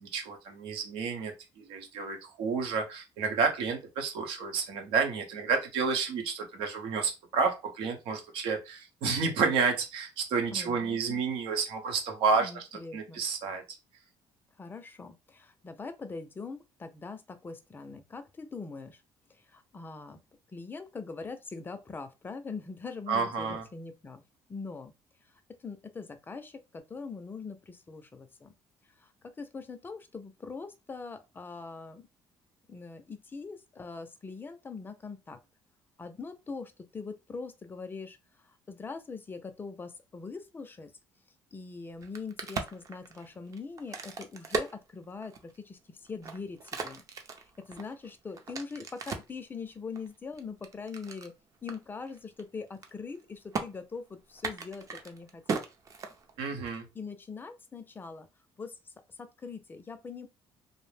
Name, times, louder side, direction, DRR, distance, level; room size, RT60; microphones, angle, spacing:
voice 1, 0.0-12.7 12.9-13.6 23.1-23.6 56.4-56.9, right 5 dB, 90° right, 0.8 m, -30 dB
voice 2, 10.5-11.2 12.4-13.2 14.6-19.0 19.3-20.2 20.5-24.2 24.5-24.9 25.3-28.5 29.0-32.1 32.7-35.4 36.0-38.2 38.4-40.9 41.5-47.0 47.4-51.3 51.6-55.6 56.9-58.3 58.6-60.3, left 4 dB, 25° left, 0.4 m, -42 dB
Crack, 41.9-45.6 46.1-49.4 50.0-51.3 51.7-51.8 52.1-52.4 52.7-53.2 53.5-53.7 54.3-56.6, right 4 dB, 40° right, 0.5 m, -37 dB
2.5 x 2.0 x 3.2 m
cardioid pair, 125°, 9 cm